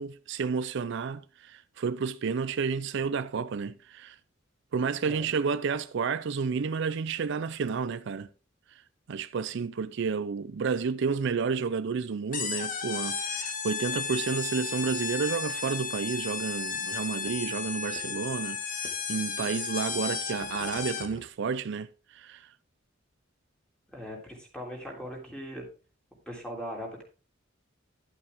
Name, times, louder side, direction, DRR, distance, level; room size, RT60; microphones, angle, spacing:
voice 1, 0.0-4.2 4.7-8.3 8.7-8.8 9.1-22.5, right 5 dB, 60° right, 0.4 m, -31 dB
sound 1, 12.3-21.2, left 5 dB, 45° left, 1.4 m, -34 dB
voice 2, 23.9-25.7 26.3-27.0, equal, 5° left, 3.2 m, -39 dB
11.5 x 8.2 x 3.5 m
head